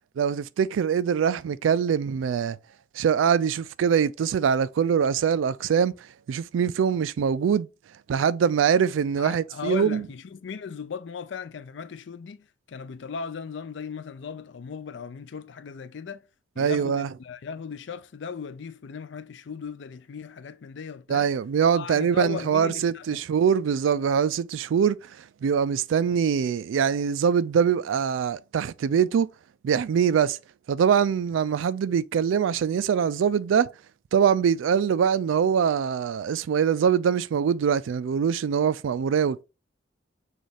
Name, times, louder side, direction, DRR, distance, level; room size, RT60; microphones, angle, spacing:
voice 1, 0.2-2.6 2.9-5.9 6.3-7.7 8.1-10.0 16.6-17.1 21.1-29.3 29.6-30.4 30.7-33.7 34.1-39.4, right 7 dB, 85° right, 0.3 m, -23 dB
voice 2, 9.2-16.2 16.6-21.3 21.7-23.2, left 6 dB, 70° left, 0.4 m, -37 dB
6.3 x 2.4 x 3.3 m
head